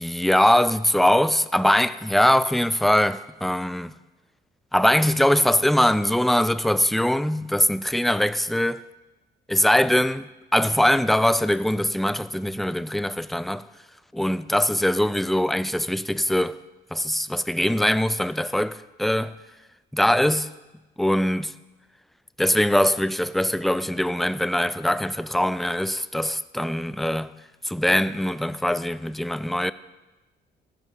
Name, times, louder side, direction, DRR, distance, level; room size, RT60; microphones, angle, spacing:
voice 1, 0.0-3.9 4.7-8.8 9.5-13.7 14.1-16.6 16.9-19.3 19.9-20.5 21.0-21.5 22.4-27.3 27.6-29.7, left 1 dB, ahead, 0.4 m, -22 dB
14.5 x 12.0 x 4.0 m
cardioid pair, 90°, 20 cm